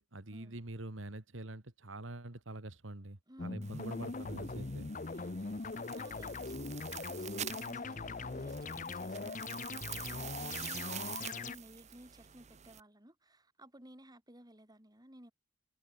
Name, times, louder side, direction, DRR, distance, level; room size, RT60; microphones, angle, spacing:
voice 1, 0.0-4.9, right 2 dB, 85° right, 2.1 m, -45 dB
voice 2, 3.3-3.8 5.1-15.3, right 1 dB, 20° right, 5.3 m, -56 dB
sound 1, 3.4-11.6, left 3 dB, 45° left, 0.9 m, -41 dB
sound 2, 3.6-12.8, right 10 dB, 35° right, 0.9 m, -47 dB
head